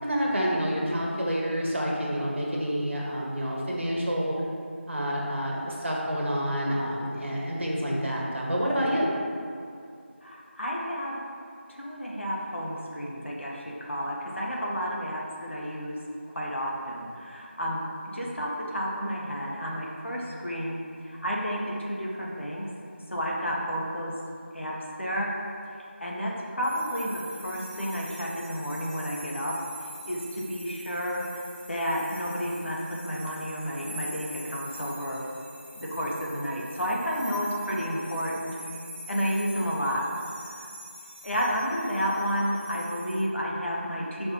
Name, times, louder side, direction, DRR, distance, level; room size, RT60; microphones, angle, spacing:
voice 1, 0.0-4.3 4.9-9.1, equal, 65° right, -3 dB, 1.7 m, -28 dB
voice 2, 10.2-11.2 11.7-16.0 16.3-20.7 21.0-22.7 23.1-24.1 24.5-25.3 25.7-31.4 31.7-35.2 35.7-38.5 39.1-40.0 40.4-40.7 41.2-44.3, equal, 70° left, -4 dB, 1.7 m, -31 dB
sound 1, 26.6-43.2, equal, 45° left, 1.6 m, -45 dB
9.5 x 5.5 x 3.0 m, 2.4 s
figure-of-eight pair, 175°, 7 cm